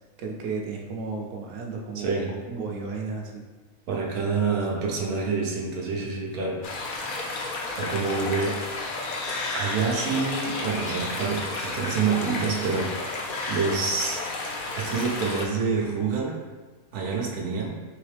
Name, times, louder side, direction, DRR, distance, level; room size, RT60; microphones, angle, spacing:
voice 1, 0.2-3.5 4.4-4.6 6.0-6.1, right 4 dB, 70° right, 0 dB, 0.9 m, -34 dB
voice 2, 1.9-2.3 3.9-6.6 7.8-8.6 9.5-14.2 14.7-16.4 16.9-17.8, right 5 dB, 85° right, -2 dB, 1.2 m, -27 dB
sound 1, 6.6-15.4, left 2 dB, 60° left, 0.5 m, -32 dB
3.9 x 3.2 x 3.3 m, 1.3 s
omnidirectional pair, 1.5 m